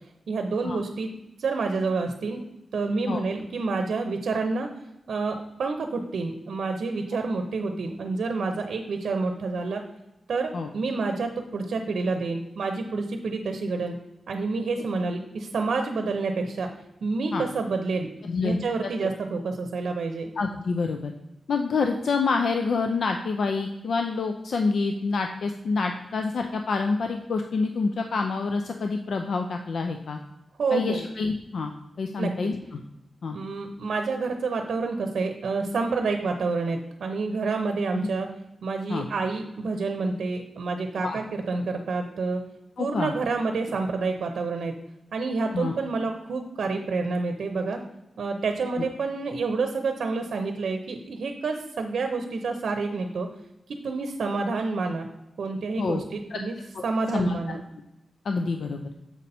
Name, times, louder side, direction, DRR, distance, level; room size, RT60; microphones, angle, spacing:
voice 1, 0.3-1.1 1.4-2.4 2.7-4.7 5.1-9.8 10.3-14.0 14.3-16.7 17.0-18.1 18.4-20.3 30.6-31.0 32.2-32.5 33.3-38.3 38.6-42.4 42.8-44.8 45.1-47.8 48.2-53.3 53.7-55.1 55.4-56.5 56.8-57.6, right 3 dB, 80° right, 5 dB, 0.7 m, -28 dB
voice 2, 18.2-18.6 20.4-21.1 21.5-30.2 30.7-32.8 33.2-33.4 37.9-38.1 38.9-39.1 41.0-41.2 42.8-43.1 45.5-45.7 55.8-56.0 56.3-56.4 56.7-56.8 57.1-57.3 58.2-58.8, left 4 dB, 65° left, 4 dB, 0.5 m, -27 dB
7.3 x 5.4 x 4.2 m, 0.92 s
wide cardioid pair, 150°, 0 cm